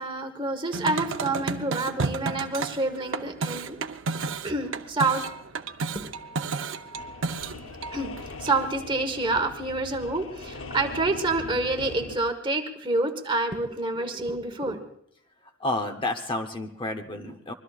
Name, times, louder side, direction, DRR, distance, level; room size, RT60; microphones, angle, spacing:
voice 1, 0.0-3.8 4.4-5.2 5.9-6.1 7.9-8.1 8.4-14.8, right 2 dB, 25° right, 6 dB, 1.2 m, -28 dB
sound 1, 0.7-8.6, right 4 dB, 70° right, 0.7 m, -32 dB
sound 2, 6.9-12.2, left 3 dB, 75° left, 0.8 m, -41 dB
voice 2, 15.6-17.5, left 2 dB, 25° left, 7 dB, 0.8 m, -30 dB
24.5 x 21.5 x 2.4 m, 0.72 s
head